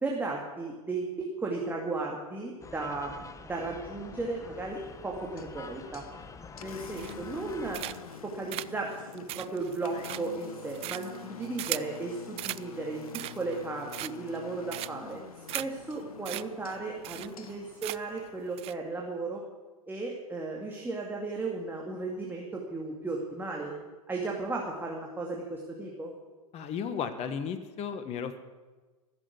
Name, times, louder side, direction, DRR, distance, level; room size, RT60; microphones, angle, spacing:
voice 1, 0.0-6.0 6.6-7.8 8.2-19.4 19.9-23.7 24.1-26.1, right 3 dB, 10° right, -1 dB, 2.3 m, -35 dB
sound 1, 2.6-7.9, left 4 dB, 15° left, 1.0 m, -47 dB
Engine, 4.5-18.5, left 7 dB, 80° left, 1.0 m, -47 dB
sound 2, 7.0-7.4 7.7-8.2 8.5-12.0 12.4-12.6 13.0-13.5 13.9-14.4 14.7-15.1 15.5-15.6 15.9-16.0 16.2-16.4 16.7-16.8 17.0-17.5 17.8-18.2 18.6-18.7, right 16 dB, 35° right, 0.4 m, -37 dB
voice 2, 26.5-28.4, left 7 dB, 35° left, 10 dB, 1.3 m, -34 dB
15.0 x 7.6 x 9.5 m, 1.3 s
hypercardioid pair, 100°, 18 cm